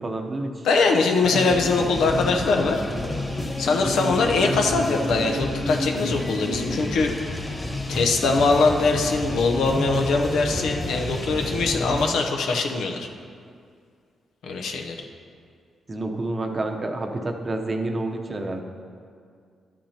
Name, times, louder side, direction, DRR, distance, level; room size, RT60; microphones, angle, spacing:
voice 1, 0.0-0.7 15.9-18.6, right 2 dB, 30° right, 4 dB, 0.7 m, -29 dB
voice 2, 0.6-2.8 3.6-7.1 7.9-13.1 14.4-15.0, left 3 dB, 90° left, 2 dB, 0.8 m, -22 dB
sound 1, 1.2-12.1, left 1 dB, 20° left, 1.1 m, -29 dB
11.5 x 8.6 x 2.8 m, 2.2 s
cardioid pair, 105°, 0 cm